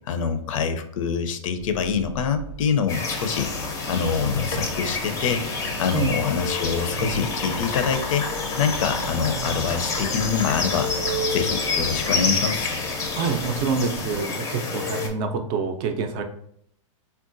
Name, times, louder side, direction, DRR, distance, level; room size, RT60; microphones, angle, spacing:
voice 1, 0.0-3.5 3.9-5.5 5.8-8.3 8.6-10.9 11.3-12.8, left 6 dB, 75° left, 8 dB, 0.5 m, -25 dB
sound 1, 1.6-14.2, right 2 dB, 85° right, 0.6 m, -37 dB
sound 2, 2.9-15.1, left 3 dB, 20° left, 0.4 m, -28 dB
voice 2, 13.2-16.2, right 5 dB, 40° right, 6 dB, 0.4 m, -26 dB
3.7 x 2.2 x 2.5 m, 0.69 s
hypercardioid pair, 135°, 17 cm